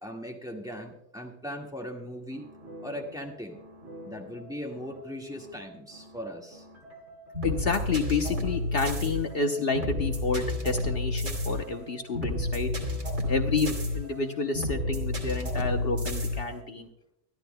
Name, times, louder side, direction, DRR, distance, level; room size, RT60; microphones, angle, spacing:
voice 1, 0.0-2.5 2.8-3.6 4.0-6.6, equal, 5° right, 0 dB, 1.7 m, -39 dB
sound 1, 2.3-16.6, left 2 dB, 70° right, 2.7 m, -32 dB
voice 2, 7.4-12.7 13.3-16.9, left 4 dB, 60° left, 4 dB, 1.1 m, -29 dB
24.5 x 11.5 x 2.2 m, 0.77 s
omnidirectional pair, 1.2 m